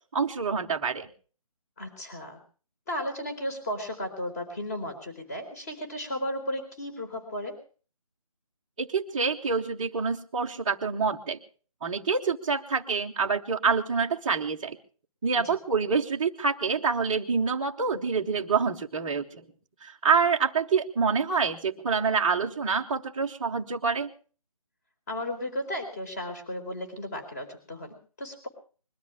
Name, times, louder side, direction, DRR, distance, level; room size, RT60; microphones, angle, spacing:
voice 1, 0.1-1.1 8.8-11.4 11.8-14.8 15.2-19.5 19.8-24.1, right 5 dB, 10° right, -5 dB, 0.7 m, -27 dB
voice 2, 1.8-2.4 2.9-7.6 15.4-15.6 25.1-28.5, left 1 dB, 25° left, 5 dB, 4.2 m, -34 dB
21.5 x 13.0 x 4.8 m, 0.40 s
figure-of-eight pair, 170°, 18 cm